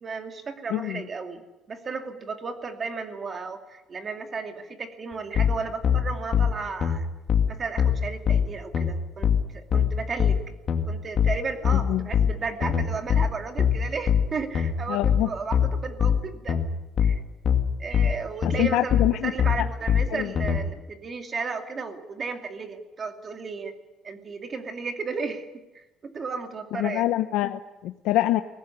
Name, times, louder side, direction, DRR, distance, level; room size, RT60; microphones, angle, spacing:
voice 1, 0.0-1.4 1.7-7.1 7.5-10.6 10.9-16.6 17.0-17.2 17.8-23.7 24.0-27.1, right 4 dB, 25° right, 5 dB, 2.5 m, -34 dB
voice 2, 0.7-1.0 11.9-12.1 14.9-15.3 18.4-19.3 19.6-19.7 20.1-20.3 26.8-28.4, left 14 dB, 80° left, 8 dB, 0.9 m, -25 dB
sound 1, 5.4-20.6, left 8 dB, 35° left, 2.4 m, -23 dB
23.0 x 18.0 x 10.0 m, 1.0 s
cardioid pair, 170°, 0 cm